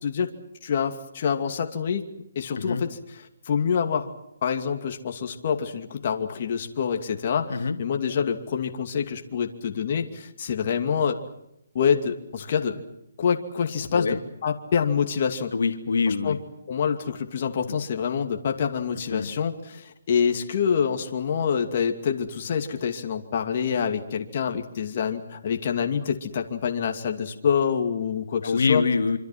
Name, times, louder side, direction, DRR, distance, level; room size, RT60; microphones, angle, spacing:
voice 1, 0.6-2.1 2.4-3.0 3.5-4.1 4.4-11.2 11.7-12.8 13.2-14.2 14.4-15.5 16.1-16.4 16.7-28.8, left 7 dB, 40° left, 4 dB, 2.5 m, -26 dB
voice 2, 13.9-14.2 15.5-16.4 17.6-17.7 19.1-19.3 28.4-29.2, left 4 dB, 80° left, 7 dB, 2.7 m, -25 dB
26.0 x 26.0 x 6.1 m, 0.79 s
hypercardioid pair, 165°, 0 cm